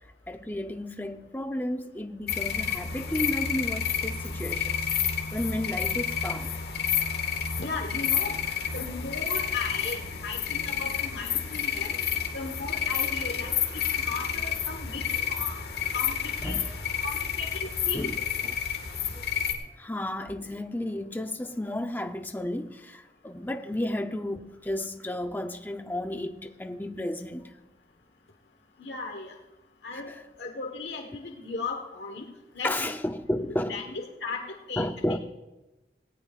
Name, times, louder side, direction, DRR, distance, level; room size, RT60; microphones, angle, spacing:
voice 1, 0.3-4.8 5.3-6.6 11.9-12.0 16.4-16.6 17.9-18.2 18.4-18.5 19.1-19.2 19.8-27.5 29.9-30.0 32.6-33.8 34.8-35.2, left 1 dB, 10° left, 0.6 m, -32 dB
sound 1, 2.3-19.5, left 7 dB, 60° left, 1.7 m, -30 dB
voice 2, 7.6-8.4 8.7-11.9 12.3-15.6 15.9-16.2 16.4-16.6 17.0-18.1 28.8-29.3 29.8-30.1 30.4-32.3 32.5-32.7 33.4-35.2, left 4 dB, 80° left, 1.3 m, -36 dB
18.0 x 17.5 x 2.4 m
head